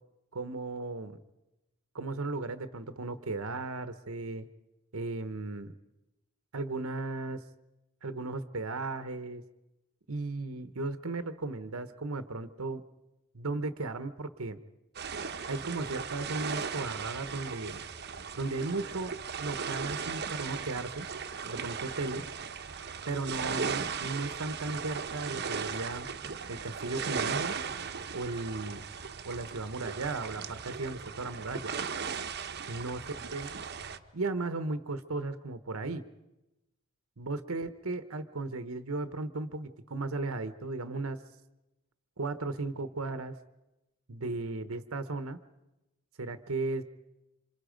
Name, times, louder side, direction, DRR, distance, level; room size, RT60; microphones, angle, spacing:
voice 1, 0.3-1.2 1.9-4.5 4.9-5.7 6.5-7.4 8.0-9.4 10.1-12.8 13.3-14.6 15.5-17.8 18.4-19.1 19.4-21.1 21.4-22.2 23.1-26.1 26.5-27.5 28.1-28.8 29.2-31.7 32.7-33.0 33.3-33.5 34.1-36.0 37.2-41.2 42.2-43.3 44.1-45.4 46.2-46.8, right 3 dB, 70° right, 11 dB, 1.1 m, -35 dB
sound 1, 14.9-34.0, right 6 dB, 50° right, 1.0 m, -37 dB
27.5 x 26.5 x 5.2 m, 0.98 s
head